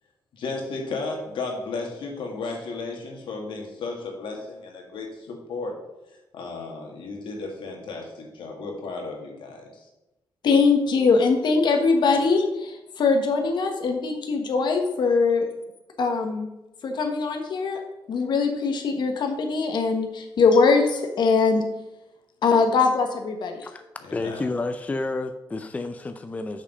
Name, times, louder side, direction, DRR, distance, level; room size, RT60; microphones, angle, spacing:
voice 1, 0.3-5.8 6.3-9.9 24.0-24.4, left 3 dB, 80° left, 1 dB, 1.9 m, -34 dB
voice 2, 10.4-15.5 16.0-16.5 16.8-17.8 18.1-21.7 22.4-23.5, left 4 dB, 65° left, 4 dB, 1.2 m, -21 dB
voice 3, 24.1-26.6, left 2 dB, 15° left, 8 dB, 0.4 m, -30 dB
6.3 x 6.0 x 5.3 m, 0.97 s
wide cardioid pair, 140°, 8 cm